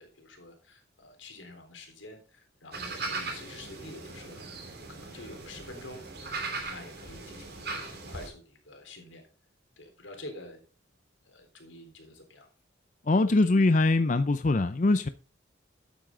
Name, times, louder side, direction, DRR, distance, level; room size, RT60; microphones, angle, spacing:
voice 1, 0.0-9.2 9.8-10.6 11.3-12.5, left 2 dB, 85° left, 3.7 m, -48 dB
sound 1, 2.7-8.3, right 3 dB, 55° right, 3.3 m, -39 dB
voice 2, 13.1-15.1, left 2 dB, 40° left, 0.5 m, -23 dB
12.5 x 9.3 x 3.7 m
head